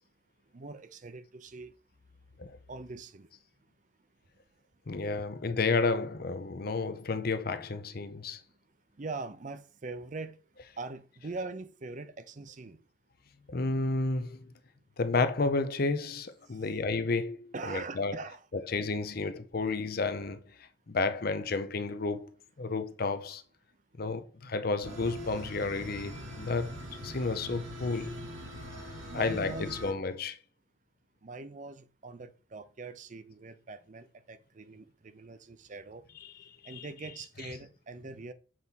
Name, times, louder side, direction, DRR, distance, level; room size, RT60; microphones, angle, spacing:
voice 1, 0.5-1.7 2.7-3.3 8.9-10.4 10.8-12.8 16.5-16.6 17.5-18.4 29.1-29.8 31.2-36.0 36.6-38.3, right 3 dB, 40° right, 0.5 m, -42 dB
voice 2, 4.9-8.4 13.5-14.5 15.0-18.2 18.5-23.4 24.0-28.2 29.1-30.4 36.2-36.3 36.6-36.9, left 3 dB, 50° left, 0.6 m, -32 dB
sound 1, 24.8-29.9, equal, 85° right, 2.4 m, -43 dB
7.5 x 4.2 x 4.0 m
head